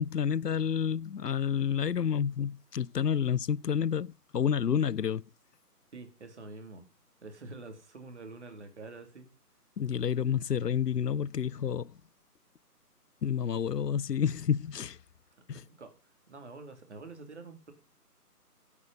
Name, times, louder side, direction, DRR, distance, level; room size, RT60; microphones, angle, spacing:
voice 1, 0.0-5.2 9.8-12.0 13.2-15.0 15.5-15.6, left 8 dB, 80° left, 0.6 m, -29 dB
voice 2, 5.9-6.8 7.2-9.3 15.5-15.9 16.3-17.7, right 3 dB, 45° right, 3.2 m, -46 dB
15.5 x 8.6 x 5.6 m
figure-of-eight pair, 155°, 47 cm